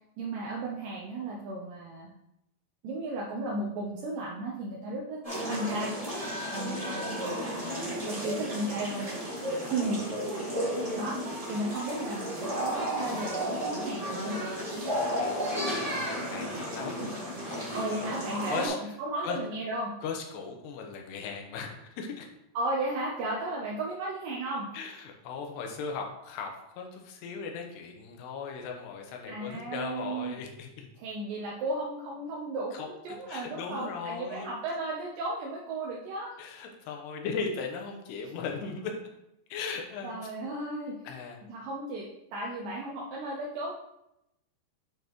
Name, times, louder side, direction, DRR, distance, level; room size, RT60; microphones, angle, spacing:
voice 1, 0.2-2.1 2.8-5.9 6.5-7.8 8.1-9.1 9.7-10.1 10.9-14.4 17.7-19.9 22.5-24.7 29.3-30.4 31.0-36.4 40.0-41.0 41.5-43.7, right 2 dB, 80° right, -3 dB, 2.0 m, -34 dB
sound 1, 5.2-18.7, equal, 40° right, 0.4 m, -33 dB
voice 2, 9.5-9.8 15.0-17.0 17.3-18.1 18.5-18.8 19.2-19.4 20.0-22.3 24.7-30.9 32.7-34.5 36.4-38.9 39.5-40.3 41.0-41.4, left 5 dB, 75° left, 2 dB, 3.0 m, -38 dB
9.0 x 5.3 x 3.1 m, 0.84 s
omnidirectional pair, 5.1 m